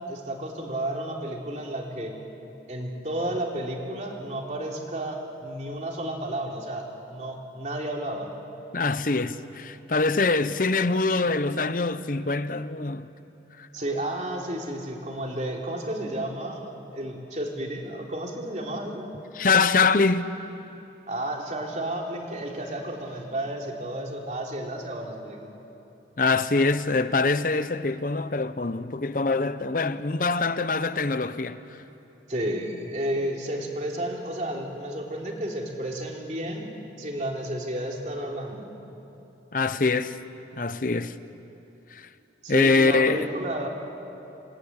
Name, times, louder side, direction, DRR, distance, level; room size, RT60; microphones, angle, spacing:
voice 1, 0.1-2.1 2.7-8.3 13.7-19.1 21.1-25.5 32.3-36.7 37.0-38.7 42.4-43.7, right 1 dB, 40° right, 3.4 m, -32 dB
voice 2, 8.7-13.1 13.6-13.7 19.3-20.3 26.2-31.6 39.5-40.2 40.6-41.2 41.9-42.1 42.5-43.3, left 3 dB, 50° left, 0.8 m, -24 dB
28.0 x 19.0 x 9.8 m
head